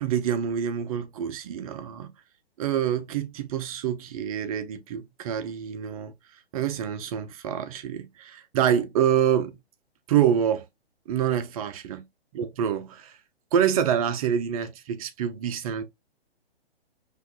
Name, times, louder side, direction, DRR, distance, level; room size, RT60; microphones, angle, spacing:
voice 1, 0.0-2.1 2.6-6.1 6.5-9.6 10.1-10.6 11.1-12.0 12.4-13.2 13.5-15.8, right 9 dB, 35° right, 0.6 m, -26 dB
5.5 x 3.0 x 2.2 m
hypercardioid pair, 130°, 32 cm